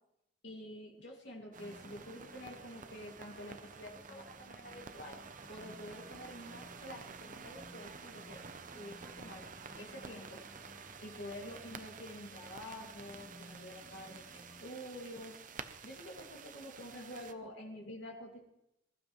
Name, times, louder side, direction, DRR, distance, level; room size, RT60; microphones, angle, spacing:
voice 1, 0.4-5.2 5.5-8.4 8.7-9.4 9.8-10.4 11.0-15.4 15.8-18.4, left 1 dB, 75° left, -1 dB, 2.4 m, -48 dB
sound 1, 1.5-17.3, right 5 dB, 45° right, 0.7 m, -51 dB
sound 2, 1.6-14.7, left 1 dB, 15° left, 0.9 m, -58 dB
21.0 x 12.5 x 3.2 m, 0.86 s
head